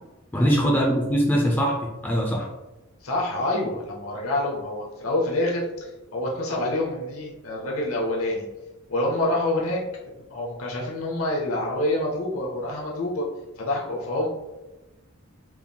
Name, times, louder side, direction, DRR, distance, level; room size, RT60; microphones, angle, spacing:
voice 1, 0.3-2.5, equal, 10° left, -2 dB, 0.4 m, -22 dB
voice 2, 3.0-8.4 8.9-9.8 10.3-13.3 13.6-14.3, left 1 dB, 75° left, -3 dB, 0.9 m, -27 dB
4.6 x 3.5 x 2.2 m, 1.1 s
head